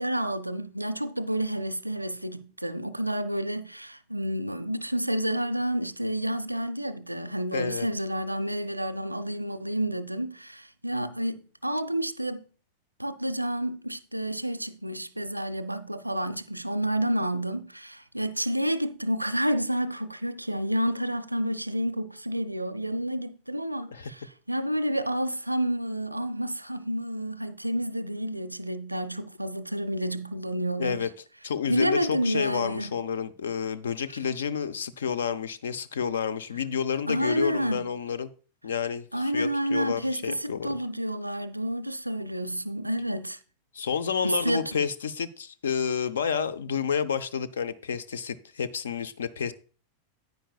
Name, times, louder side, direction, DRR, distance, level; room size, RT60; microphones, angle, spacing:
voice 1, 0.0-12.4 13.0-31.1 31.7-32.9 37.1-37.9 39.1-43.4 44.2-44.8, equal, 85° right, 0.5 m, -30 dB
voice 2, 7.5-7.9 23.9-24.1 30.8-31.1 31.4-38.3 38.6-39.1 39.3-40.8 43.7-49.5, left 7 dB, 65° left, 0.5 m, -30 dB
9.8 x 9.2 x 2.3 m
figure-of-eight pair, 90°, 0 cm